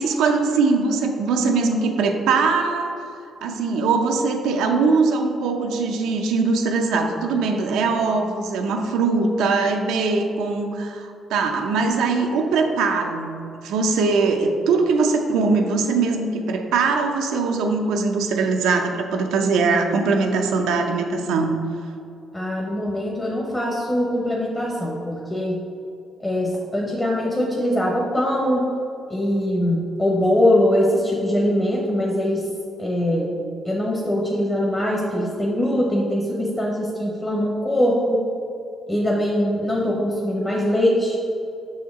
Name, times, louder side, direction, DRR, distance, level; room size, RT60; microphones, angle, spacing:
voice 1, 0.0-2.9 3.4-21.6, right 4 dB, 90° right, 3 dB, 0.5 m, -21 dB
voice 2, 22.3-25.6 26.2-28.7 29.1-32.5 32.8-33.4 33.6-38.2 38.9-41.2, left 1 dB, 15° left, -3 dB, 0.9 m, -22 dB
6.4 x 4.3 x 3.6 m, 2.6 s
cardioid pair, 90°, 0 cm